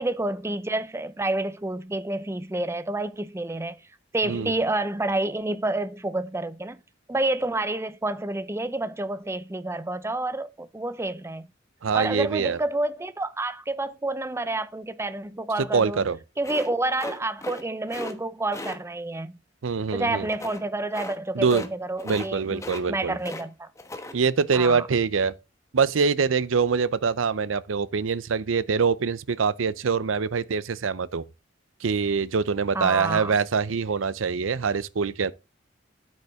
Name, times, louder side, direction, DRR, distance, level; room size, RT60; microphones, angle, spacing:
voice 1, 0.0-3.8 4.1-6.8 7.1-11.5 11.9-16.0 16.4-19.3 19.9-23.7 24.5-24.9 32.7-33.3, right 2 dB, 15° right, 0.6 m, -29 dB
voice 2, 11.8-12.6 15.7-16.2 19.6-20.3 21.3-21.6 22.0-23.2 24.1-25.3 25.7-31.3 31.8-35.3, right 5 dB, 85° right, 0.6 m, -24 dB
sound 1, 16.4-17.6 17.9-18.1 18.5-18.8 20.3-20.6 20.9-21.2 21.4-21.7 22.0-22.3 22.6-23.4 23.8-24.1, left 2 dB, 15° left, 1.2 m, -37 dB
9.6 x 8.7 x 3.6 m
head